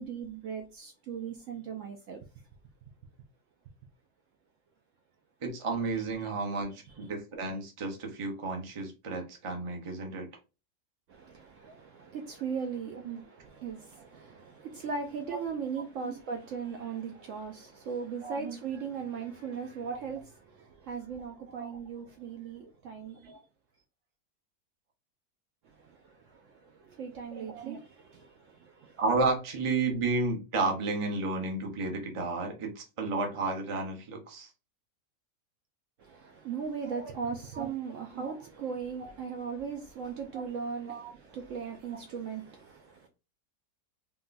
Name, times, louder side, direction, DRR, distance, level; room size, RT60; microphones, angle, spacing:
voice 1, 0.0-2.2 11.1-23.4 25.6-29.0 36.0-43.1, right 6 dB, 70° right, 0.8 m, -38 dB
voice 2, 5.4-10.3 12.9-13.2 15.3-15.5 16.0-16.1 18.2-18.6 19.9-20.0 21.5-21.8 23.2-23.4 27.3-27.8 29.0-34.5 36.9-37.7 38.1-38.3 39.0-39.1 40.3-40.4 40.9-41.1, right 3 dB, 35° right, 0.5 m, -33 dB
3.7 x 2.2 x 2.5 m
omnidirectional pair, 1.6 m